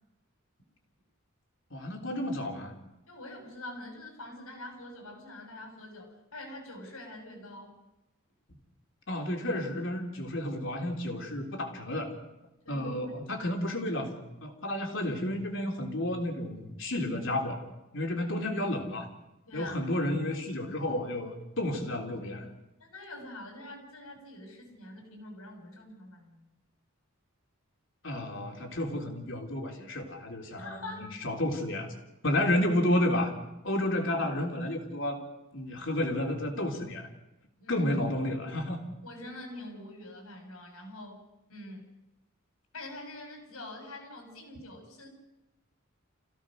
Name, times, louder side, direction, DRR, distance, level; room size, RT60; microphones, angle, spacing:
voice 1, 1.7-2.7 9.1-12.1 12.7-14.2 14.4-17.6 17.9-19.1 19.5-22.5 28.0-31.9 32.2-33.3 33.6-35.2 35.5-37.1 37.7-38.8, left 1 dB, 60° left, 2 dB, 3.6 m, -31 dB
voice 2, 3.0-7.8 12.6-13.5 19.5-19.8 22.8-26.4 30.6-31.1 32.3-32.4 34.1-34.2 37.6-37.9 39.0-41.2 41.5-41.9 42.7-45.1, left 1 dB, 90° left, 3 dB, 6.7 m, -45 dB
28.0 x 16.5 x 6.4 m, 0.98 s
head